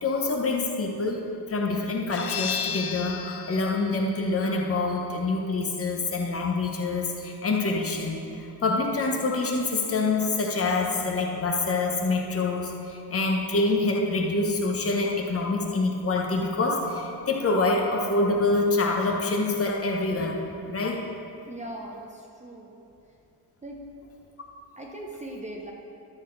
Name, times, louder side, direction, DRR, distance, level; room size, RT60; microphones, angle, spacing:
voice 1, 0.0-1.2 1.5-8.2 8.6-20.4 20.7-21.0, left 3 dB, 35° left, 2 dB, 0.8 m, -26 dB
sound 1, 2.1-7.5, left 7 dB, 70° left, 0.7 m, -36 dB
voice 2, 21.5-22.8 23.6-23.8 24.8-25.7, right 1 dB, 20° right, -1 dB, 0.5 m, -39 dB
10.5 x 6.3 x 3.8 m, 2.8 s
wide cardioid pair, 170°, 41 cm